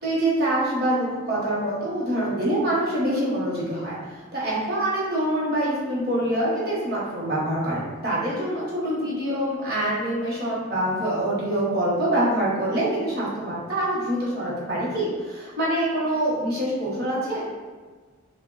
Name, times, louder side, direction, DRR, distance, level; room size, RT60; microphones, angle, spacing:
voice 1, 0.0-4.0 4.3-17.5, right 1 dB, 45° right, -7 dB, 0.9 m, -25 dB
3.1 x 2.1 x 2.2 m, 1.4 s
head